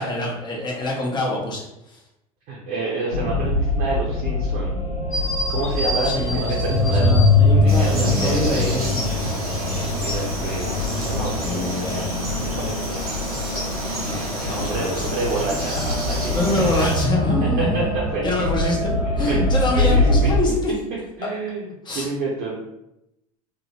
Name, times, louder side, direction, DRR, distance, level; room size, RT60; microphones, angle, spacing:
voice 1, 0.0-2.0 6.0-9.1 9.7-9.9 11.3-12.0 14.0-15.0 15.7-15.8 16.2-20.7 21.8-22.1, left 1 dB, 25° left, -3 dB, 0.8 m, -26 dB
voice 2, 2.5-4.8 5.5-7.1 7.6-8.8 9.7-13.1 14.6-17.0 17.6-18.7 19.1-19.5 19.7-20.3 21.2-22.6, right 3 dB, 50° right, -4 dB, 0.6 m, -29 dB
sound 1, 3.1-20.4, left 2 dB, 80° left, 0.5 m, -23 dB
sound 2, 5.1-7.3 8.2-8.3 8.9-10.2 13.5-13.6, equal, 65° left, 1.0 m, -30 dB
Frog, 7.7-17.1, equal, 85° right, 0.6 m, -30 dB
2.6 x 2.1 x 2.9 m, 0.85 s
figure-of-eight pair, 70°, 19 cm